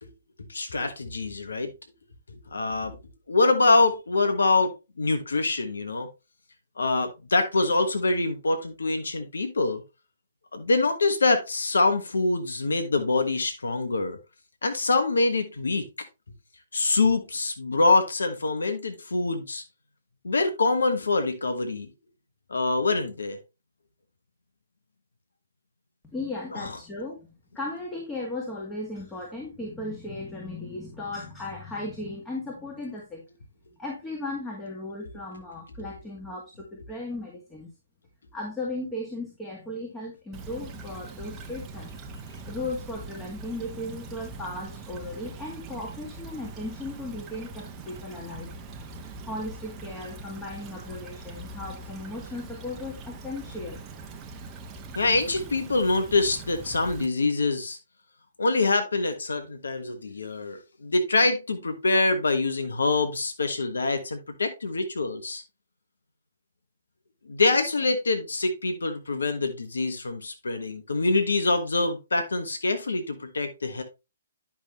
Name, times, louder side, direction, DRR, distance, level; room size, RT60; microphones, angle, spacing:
voice 1, 0.5-1.7 2.5-3.0 3.3-6.1 6.8-9.8 10.5-14.2 14.6-15.8 16.7-19.6 20.2-21.9 22.5-23.4 26.5-26.7 54.9-57.8 58.4-65.4 67.3-73.8, left 3 dB, 75° left, 7 dB, 1.3 m, -25 dB
voice 2, 26.0-27.3 27.5-33.2 33.8-37.7 38.3-42.0 42.5-48.5 49.3-53.9, left 2 dB, 10° left, -2 dB, 2.1 m, -36 dB
Stream / Trickle dribble, 40.3-57.1, right 3 dB, 20° right, 1.0 m, -42 dB
10.0 x 6.1 x 3.1 m, 0.26 s
figure-of-eight pair, 130°, 0 cm